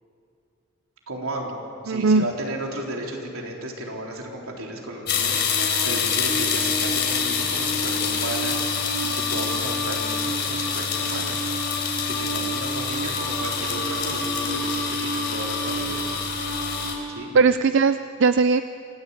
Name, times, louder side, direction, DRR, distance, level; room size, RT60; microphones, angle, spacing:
voice 1, 1.1-1.6 1.8-8.7 9.0-11.4 12.1-16.1 17.1-17.3, right 1 dB, 85° right, -1 dB, 3.9 m, -34 dB
voice 2, 1.9-2.4 17.3-18.6, right 4 dB, 60° right, 11 dB, 0.5 m, -19 dB
sound 1, 5.1-17.0, left 4 dB, 50° left, 3.6 m, -25 dB
27.0 x 16.5 x 8.6 m, 2.6 s
head